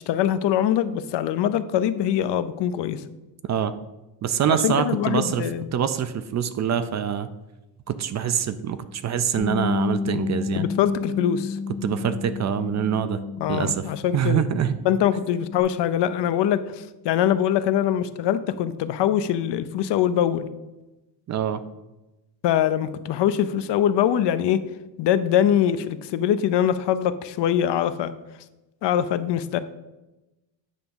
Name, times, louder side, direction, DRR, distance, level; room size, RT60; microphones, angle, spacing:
voice 1, 0.0-3.0 4.5-5.7 10.6-11.6 13.4-14.4 14.8-20.5 22.4-24.6 25.0-28.1 28.8-29.6, left 10 dB, 70° left, 13 dB, 0.6 m, -23 dB
voice 2, 4.2-5.5 5.7-7.3 7.9-10.7 11.8-13.2 13.5-13.9 14.1-14.7 21.3-21.6, right 8 dB, 40° right, 12 dB, 0.4 m, -25 dB
Bass guitar, 9.4-14.1 14.4-15.6, left 5 dB, 85° left, 1.2 m, -31 dB
9.1 x 3.5 x 6.9 m, 1.0 s
cardioid pair, 165°, 44 cm